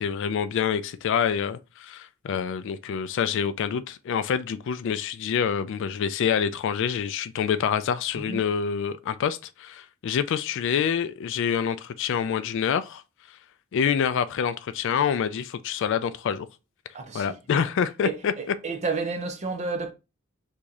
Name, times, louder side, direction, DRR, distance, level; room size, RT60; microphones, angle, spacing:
voice 1, 0.0-13.0 13.3-13.4 13.7-16.5 17.1-18.3, left 7 dB, 60° left, 0.3 m, -26 dB
voice 2, 16.9-17.7 18.0-19.9, right 4 dB, 35° right, 0.6 m, -31 dB
3.0 x 2.7 x 3.5 m
head